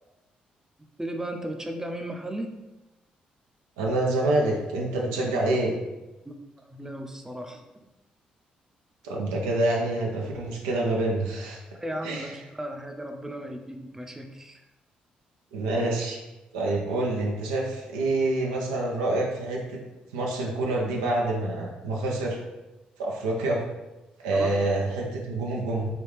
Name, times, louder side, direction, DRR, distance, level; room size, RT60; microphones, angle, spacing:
voice 1, 1.0-2.5 6.3-7.6 11.8-14.6 24.3-24.7, right 1 dB, 15° right, 4 dB, 0.5 m, -36 dB
voice 2, 3.8-5.7 9.0-11.6 12.0-12.3 15.5-16.2 16.5-19.8 20.1-22.4 23.0-23.6 24.2-25.9, right 2 dB, 90° right, -1 dB, 0.4 m, -27 dB
3.4 x 2.3 x 3.1 m, 1.0 s
hypercardioid pair, 45°, 3 cm